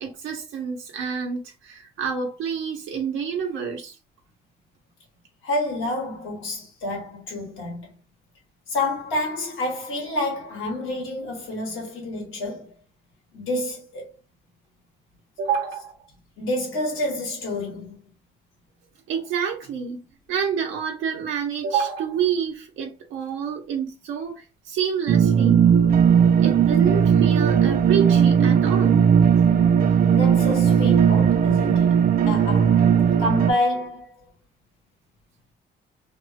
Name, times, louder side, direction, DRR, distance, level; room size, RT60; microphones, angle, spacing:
voice 1, 0.0-4.0 15.4-15.9 19.1-20.0 20.3-25.7 26.4-29.0, right 7 dB, 85° right, 0.7 m, -28 dB
voice 2, 5.4-7.9 8.7-12.7 13.3-14.1 16.4-18.0 30.1-32.0 32.3-32.8 33.2-34.2, left 1 dB, 80° left, 1.5 m, -28 dB
sound 1, 25.1-33.5, right 7 dB, 45° right, 0.4 m, -17 dB
2.9 x 2.0 x 2.7 m
cardioid pair, 90°, 20 cm